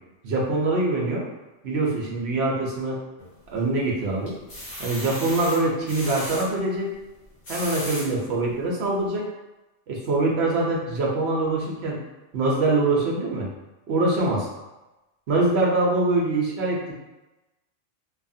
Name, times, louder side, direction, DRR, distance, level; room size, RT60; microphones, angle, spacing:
voice 1, 0.2-1.2 1.6-3.0 3.5-4.4 4.8-6.9 7.5-9.3 9.9-12.0 12.3-13.5 13.9-14.5 15.3-16.9, right 2 dB, 65° right, -3 dB, 0.9 m, -24 dB
sound 1, 3.2-3.8 4.3-6.4 7.2-8.1 8.7-8.8 9.1-9.2, left 1 dB, 50° left, 1.1 m, -35 dB
2.8 x 2.4 x 2.6 m, 1.0 s
omnidirectional pair, 1.3 m